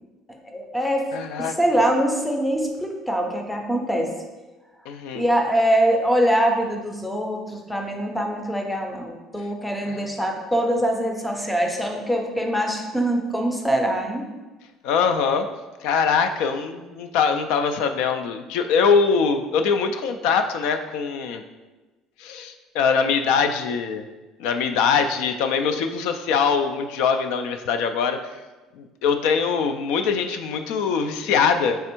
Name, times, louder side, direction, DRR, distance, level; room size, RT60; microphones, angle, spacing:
voice 1, 0.4-1.1 1.4-4.1 5.1-14.3, right 1 dB, 5° left, 2 dB, 0.5 m, -23 dB
voice 2, 1.1-1.6 4.9-5.2 9.9-10.0 14.8-15.5 15.8-21.4 22.2-24.0 24.4-28.2 28.7-31.8, left 6 dB, 80° left, 7 dB, 0.3 m, -22 dB
3.4 x 3.3 x 4.4 m, 1.2 s
cardioid pair, 150°, 0 cm